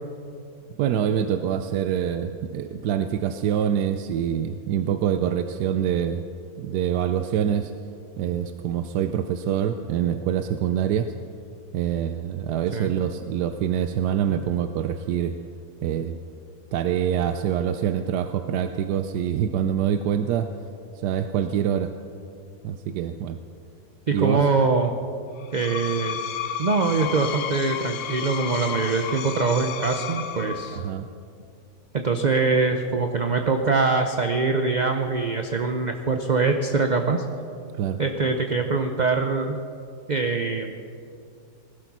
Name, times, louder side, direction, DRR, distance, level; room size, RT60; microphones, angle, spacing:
voice 1, 0.8-6.2 6.6-7.7 8.2-11.1 11.7-15.4 15.8-16.2 16.7-20.5 20.9-21.9 22.6-23.4 24.1-24.4 30.7-31.1 37.7-38.0, right 9 dB, 80° right, 9 dB, 1.2 m, -25 dB
voice 2, 24.1-24.9 25.5-26.2 26.6-30.8 31.9-37.2 38.0-39.6 40.1-40.7, right 4 dB, 45° right, 5 dB, 0.5 m, -23 dB
Screech, 25.4-30.9, left 8 dB, 85° left, 1.4 m, -32 dB
19.0 x 12.0 x 6.0 m, 2.5 s
omnidirectional pair, 1.7 m